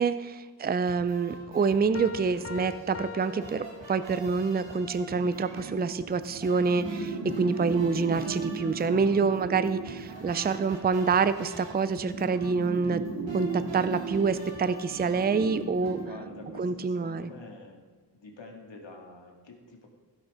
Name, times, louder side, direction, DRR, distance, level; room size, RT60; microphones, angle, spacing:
voice 1, 0.0-13.0 13.3-16.0 16.6-17.3, right 5 dB, 25° right, 13 dB, 0.4 m, -27 dB
sound 1, 0.8-16.0, right 2 dB, 90° right, 2.2 m, -47 dB
sound 2, 1.9-4.4, left 5 dB, 35° left, 0.5 m, -43 dB
sound 3, 4.6-16.9, right 4 dB, 70° right, 1.5 m, -37 dB
voice 2, 15.9-17.8 18.1-19.9, left 3 dB, 80° left, 1 dB, 2.2 m, -47 dB
16.0 x 6.2 x 4.9 m, 1.5 s
wide cardioid pair, 115°, 43 cm